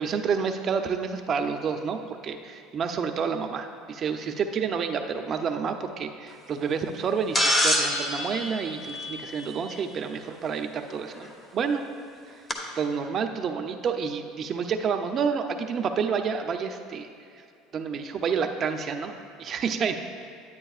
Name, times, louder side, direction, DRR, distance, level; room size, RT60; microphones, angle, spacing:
voice 1, 0.0-11.8 12.7-17.1 17.7-20.0, right 6 dB, 40° right, 6 dB, 0.6 m, -29 dB
sound 1, 7.3-9.7 11.2-11.3 12.5-12.6, left 1 dB, 15° left, 1.0 m, -25 dB
9.9 x 9.1 x 2.4 m, 2.4 s
supercardioid pair, 115°, 0 cm